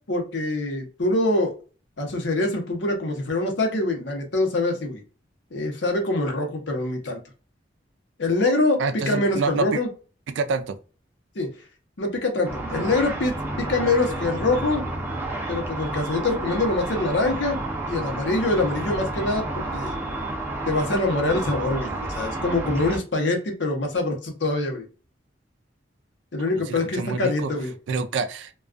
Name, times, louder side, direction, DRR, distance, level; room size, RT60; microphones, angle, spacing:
voice 1, 0.1-1.5 2.0-5.0 5.5-7.2 8.2-8.8 9.1-9.9 11.4-11.5 12.0-14.8 15.5-17.6 17.9-19.9 20.7-24.8 26.3-27.7, left 2 dB, 70° left, 0.8 m, -24 dB
voice 2, 8.8-9.8 10.3-10.8 26.4-27.5 27.9-28.5, right 4 dB, 75° right, 0.4 m, -27 dB
Car / Traffic noise roadway noise / Engine, 12.5-23.0, right 2 dB, 15° right, 0.5 m, -30 dB
2.3 x 2.3 x 2.4 m
head